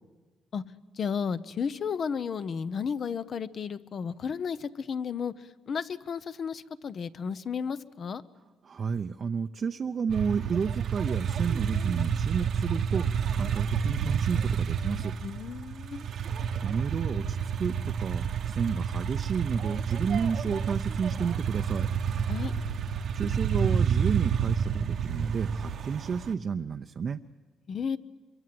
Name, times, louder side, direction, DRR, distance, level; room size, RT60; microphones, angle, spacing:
voice 1, 1.0-5.3 5.7-8.2 15.2-16.1 22.3-22.5 27.7-28.0, left 6 dB, 55° left, 13 dB, 0.9 m, -33 dB
voice 2, 8.6-15.1 16.6-21.9 23.1-27.2, right 6 dB, 50° right, 6 dB, 0.7 m, -31 dB
sound 1, 10.1-26.3, right 7 dB, 65° right, 1.1 m, -29 dB
26.5 x 24.0 x 7.8 m, 1.4 s
cardioid pair, 90°, 0 cm